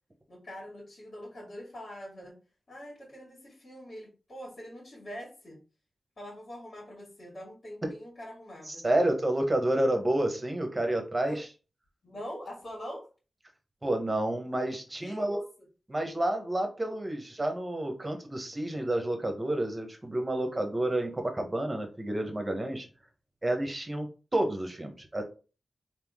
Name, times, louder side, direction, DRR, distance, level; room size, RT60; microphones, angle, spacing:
voice 1, 0.3-2.4 2.7-5.6 6.2-8.8 11.2-11.4 12.0-13.1 15.0-15.4, equal, 55° left, -5 dB, 2.2 m, -43 dB
voice 2, 8.7-11.5 13.8-15.4 15.9-22.9 23.4-25.2, right 1 dB, 25° right, 5 dB, 1.1 m, -30 dB
3.7 x 2.8 x 3.6 m, 0.34 s
cardioid pair, 65°, 0 cm